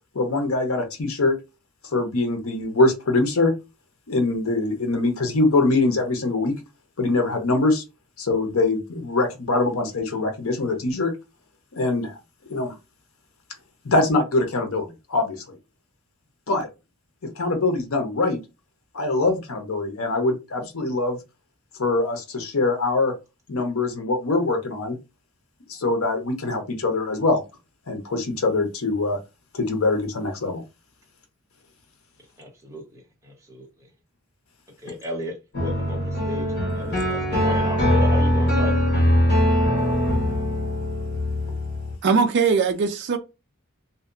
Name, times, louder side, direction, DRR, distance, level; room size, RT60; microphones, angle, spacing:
voice 1, 0.1-1.4 1.9-3.5 4.1-6.5 7.0-7.8 8.2-11.1 11.8-12.1 12.5-12.7 13.8-15.6 16.5-16.7 17.4-18.4 18.9-21.2 21.8-23.1 23.5-25.0 25.7-27.4 27.9-29.2 29.5-30.6 36.7-37.0, left 2 dB, 70° left, 0.7 m, -23 dB
voice 2, 32.4-33.9 34.8-38.8, left 1 dB, 15° right, 1.0 m, -35 dB
sound 1, 35.5-41.9, equal, 50° left, 1.2 m, -22 dB
voice 3, 42.0-43.2, right 5 dB, 55° right, 0.4 m, -20 dB
2.7 x 2.2 x 2.4 m
head